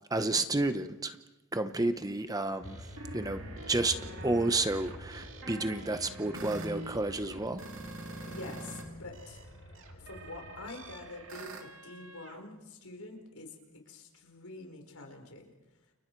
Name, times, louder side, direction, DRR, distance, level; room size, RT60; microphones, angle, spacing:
voice 1, 0.1-1.2 1.5-7.6, right 2 dB, 15° right, 9 dB, 0.9 m, -31 dB
sound 1, 2.6-11.4, left 1 dB, 60° left, 7.5 m, -48 dB
sound 2, 2.6-8.8 9.1-12.4, right 2 dB, 60° right, 2.7 m, -45 dB
voice 2, 8.2-9.4 10.0-15.5, left 2 dB, 75° left, 3 dB, 4.8 m, -46 dB
29.5 x 29.5 x 4.7 m, 1.0 s
head